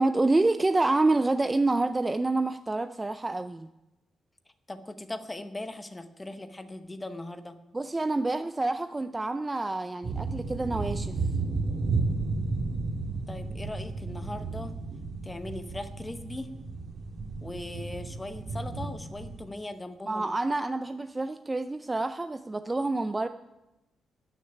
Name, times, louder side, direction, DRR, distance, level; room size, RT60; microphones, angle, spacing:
voice 1, 0.0-3.7 7.7-11.2 20.1-23.3, right 2 dB, 15° right, 10 dB, 0.4 m, -27 dB
voice 2, 4.7-7.6 13.3-14.7 15.2-16.5 17.4-20.3, left 2 dB, 10° left, 9 dB, 0.9 m, -39 dB
sound 1, 10.0-19.4, right 3 dB, 45° right, 1.7 m, -33 dB
14.0 x 6.6 x 10.0 m, 0.97 s
cardioid pair, 160°, 0 cm